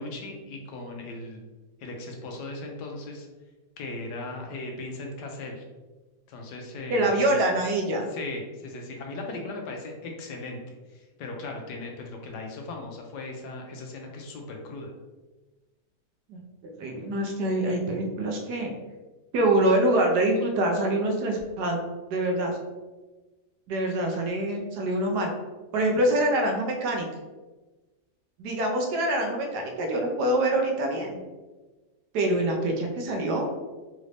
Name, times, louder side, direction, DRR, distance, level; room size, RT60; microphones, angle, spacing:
voice 1, 0.0-1.4 1.8-3.3 3.8-5.6 6.3-7.4 8.1-14.9, left 2 dB, 80° left, 2 dB, 1.3 m, -38 dB
voice 2, 6.9-8.1 16.3-16.4 16.8-18.7 19.3-21.8 22.1-22.6 23.7-25.3 25.7-27.1 28.4-31.2 32.1-33.6, right 1 dB, 75° right, 2 dB, 1.2 m, -25 dB
4.1 x 2.5 x 3.2 m, 1.2 s
omnidirectional pair, 1.8 m